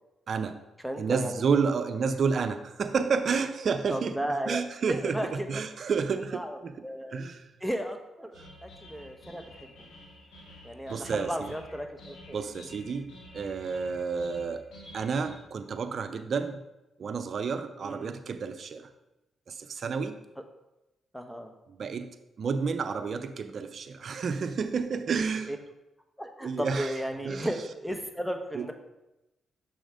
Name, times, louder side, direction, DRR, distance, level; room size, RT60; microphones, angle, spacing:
voice 1, 0.3-0.6 1.0-4.2 4.5-6.7 7.1-7.5 8.4-8.5 10.9-11.5 12.3-14.7 14.9-16.6 17.0-18.9 19.5-20.2 21.8-22.1 22.4-25.5 26.4-27.0 27.2-27.5 28.5-28.7, right 5 dB, 60° right, 9 dB, 0.6 m, -30 dB
voice 2, 0.8-1.4 3.9-4.6 4.9-5.5 6.3-7.2 7.6-8.3 8.6-9.9 10.6-12.4 17.8-18.1 21.1-21.5 25.5-25.6 26.2-28.7, equal, 5° left, 5 dB, 1.1 m, -34 dB
sound 1, 8.3-15.3, left 1 dB, 80° left, 2.0 m, -50 dB
6.3 x 4.3 x 5.0 m, 0.95 s
supercardioid pair, 50°, 0 cm